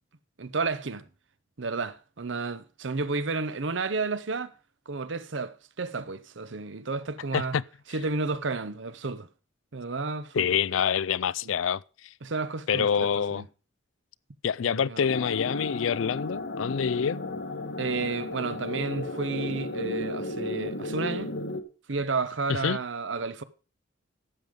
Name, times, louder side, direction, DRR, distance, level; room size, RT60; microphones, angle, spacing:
voice 1, 0.4-1.0 1.6-4.5 4.9-7.6 7.9-9.3 9.7-10.5 11.4-11.5 12.2-13.5 14.6-15.0 17.8-21.3 21.9-23.4, right 4 dB, 70° right, 0.8 m, -32 dB
voice 2, 7.3-7.6 10.3-11.8 12.7-13.4 14.4-17.2 22.6-22.8, left 7 dB, 90° left, 0.4 m, -26 dB
sound 1, 15.1-21.6, left 2 dB, 65° left, 1.3 m, -34 dB
12.5 x 8.0 x 5.1 m
head